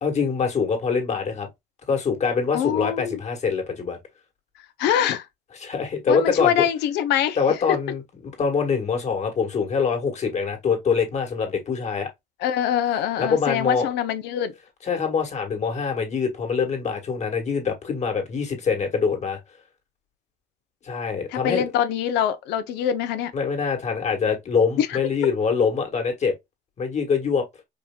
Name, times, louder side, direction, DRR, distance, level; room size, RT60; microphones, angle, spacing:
voice 1, 0.0-1.5 1.9-4.0 5.6-6.6 7.4-12.1 13.2-13.9 14.8-19.4 20.8-21.6 23.3-26.3 26.8-27.4, left 5 dB, 40° left, 1.7 m, -24 dB
voice 2, 2.5-3.2 4.8-5.3 6.1-7.8 12.4-14.5 21.3-23.3 24.8-25.0, left 10 dB, 85° left, 0.7 m, -24 dB
4.8 x 2.8 x 2.2 m
cardioid pair, 110°, 17 cm